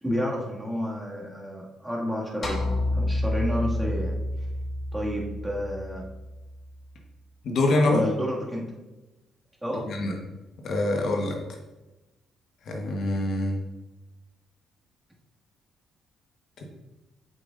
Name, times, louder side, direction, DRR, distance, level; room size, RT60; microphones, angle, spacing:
voice 1, 0.0-2.7 2.9-4.2 4.9-6.1 7.9-8.7 9.6-9.9, equal, 10° right, -3 dB, 2.0 m, -30 dB
sound 1, 2.4-6.8, left 1 dB, 45° left, 1.5 m, -29 dB
voice 2, 7.4-8.0 9.8-10.1 10.6-11.4 12.7-13.6, left 2 dB, 65° left, 1 dB, 1.2 m, -24 dB
7.9 x 6.6 x 2.5 m, 1.0 s
supercardioid pair, 60°, 0 cm